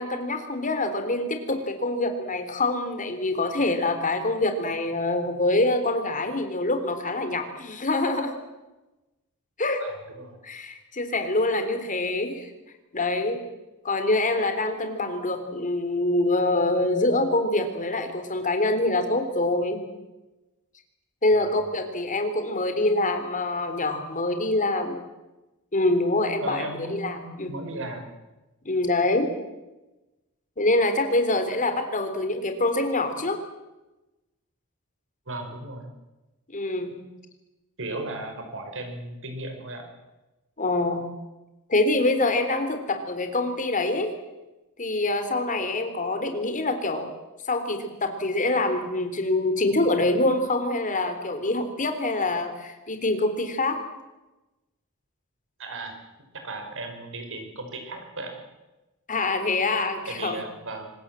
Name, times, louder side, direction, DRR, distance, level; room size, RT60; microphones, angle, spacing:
voice 1, 0.0-8.3 9.6-9.8 10.4-12.5 12.9-13.4 13.8-19.8 21.2-25.0 25.7-27.5 28.6-29.3 30.6-33.4 36.5-37.0 40.6-41.0 41.7-44.1 44.8-47.1 47.4-53.8 59.1-60.4, left 2 dB, 35° left, 7 dB, 3.5 m, -25 dB
voice 2, 9.8-10.4 21.4-21.6 26.4-28.1 35.3-35.9 37.8-39.9 55.6-56.0 56.3-58.3 60.1-60.9, right 2 dB, 65° right, 5 dB, 5.3 m, -36 dB
25.5 x 20.5 x 7.6 m, 1.1 s
head